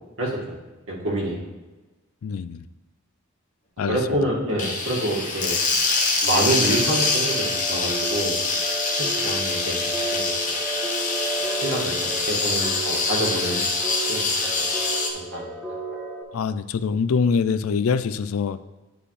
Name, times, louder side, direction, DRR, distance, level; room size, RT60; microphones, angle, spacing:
voice 1, 0.2-0.6 0.9-1.5 3.9-5.6 6.2-8.4 9.0-9.8 10.1-10.6 11.6-13.6 14.1-14.7 15.1-15.5, right 1 dB, 65° right, -3 dB, 2.0 m, -27 dB
voice 2, 2.2-2.6 3.8-4.0 16.3-18.6, left 5 dB, 70° left, 13 dB, 0.4 m, -24 dB
sound 1, 4.6-15.1, left 3 dB, 40° left, 1.1 m, -25 dB
sound 2, 6.6-16.2, right 2 dB, ahead, 1.3 m, -33 dB
10.5 x 5.0 x 3.3 m, 1.2 s
head